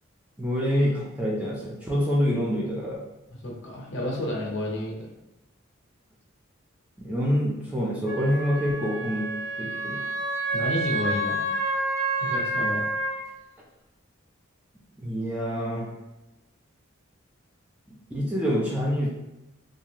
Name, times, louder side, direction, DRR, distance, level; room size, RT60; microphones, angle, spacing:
voice 1, 0.4-3.0 7.0-9.3 9.6-10.1 15.0-15.9 17.9-19.1, equal, 5° right, -4 dB, 0.4 m, -26 dB
voice 2, 3.4-5.1 10.5-11.4 12.2-12.8, left 1 dB, 65° left, -2 dB, 0.7 m, -30 dB
Wind instrument woodwind instrument, 8.1-13.2, right 2 dB, 70° right, 1.5 m, -28 dB
2.6 x 2.4 x 2.9 m, 0.97 s
head